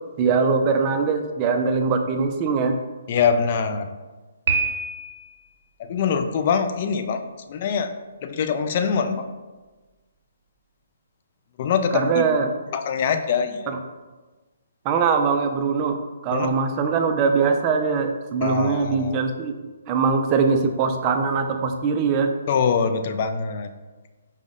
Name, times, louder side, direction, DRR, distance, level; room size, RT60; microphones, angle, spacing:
voice 1, 0.2-2.8 11.9-12.5 13.7-13.8 14.8-16.0 16.2-19.6 19.9-22.3, right 5 dB, 25° right, 5 dB, 0.4 m, -22 dB
voice 2, 3.1-3.9 5.8-7.2 7.5-7.9 8.2-9.2 11.6-12.3 12.7-13.7 16.3-16.5 18.4-19.2 22.5-23.7, left 6 dB, 40° left, 8 dB, 0.3 m, -23 dB
Piano, 4.5-5.4, right 4 dB, 60° right, 0.7 m, -25 dB
5.0 x 2.1 x 3.6 m, 1.2 s
hypercardioid pair, 150°, 0 cm